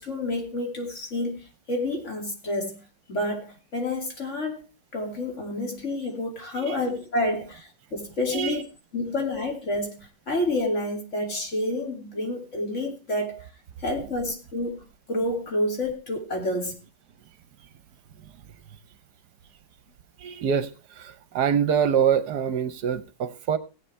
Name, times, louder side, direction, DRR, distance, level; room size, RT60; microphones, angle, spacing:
voice 1, 0.0-2.8 3.1-4.6 4.9-8.6 8.9-13.5 13.8-14.8 15.1-16.8, left 1 dB, 40° left, 2 dB, 2.8 m, -29 dB
voice 2, 20.2-23.6, right 8 dB, 70° right, 13 dB, 1.3 m, -25 dB
17.0 x 8.7 x 3.3 m, 0.29 s
omnidirectional pair, 1.9 m